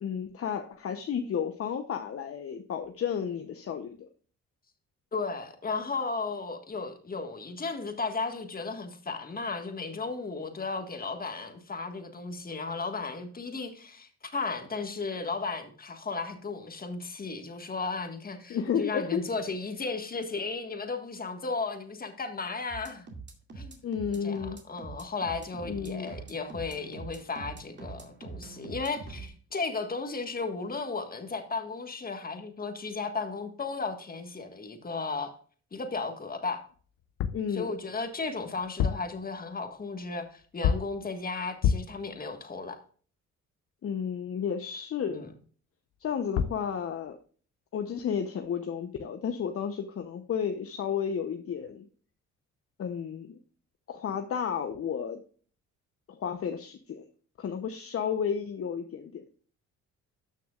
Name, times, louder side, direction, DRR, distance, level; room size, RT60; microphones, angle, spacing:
voice 1, 0.0-4.1 18.5-19.2 23.8-24.6 25.7-26.1 37.3-37.7 43.8-45.3 46.0-47.2 47.7-51.9 52.8-53.4 53.9-55.2 56.1-57.1 57.4-59.2, left 7 dB, 50° left, 6 dB, 0.9 m, -32 dB
voice 2, 5.1-23.1 23.6-23.9 24.2-35.3 35.7-36.6 37.5-42.8 45.1-45.3, left 4 dB, 30° left, 6 dB, 1.7 m, -35 dB
sound 1, 22.7-29.3, right 4 dB, 35° right, 2.3 m, -44 dB
sound 2, 37.0-37.5 38.6-39.2 40.6-41.0 41.6-42.0 46.1-46.2 46.4-46.7, left 8 dB, 80° left, 0.7 m, -28 dB
13.0 x 6.5 x 2.4 m, 0.43 s
cardioid pair, 90°, 30 cm